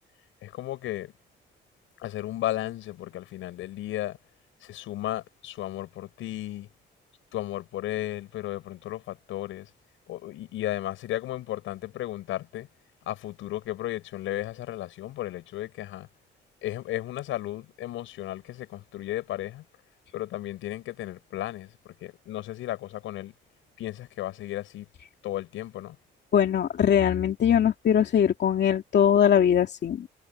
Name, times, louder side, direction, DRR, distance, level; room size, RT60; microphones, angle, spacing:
voice 1, 0.4-1.1 2.0-4.2 4.6-6.7 7.3-9.7 10.1-12.7 13.1-16.1 16.6-19.6 20.1-23.3 23.8-24.9 25.2-26.0, left 14 dB, 85° left, 6.5 m, -34 dB
voice 2, 26.3-30.1, left 9 dB, 60° left, 2.5 m, -21 dB
cardioid pair, 90°, 20 cm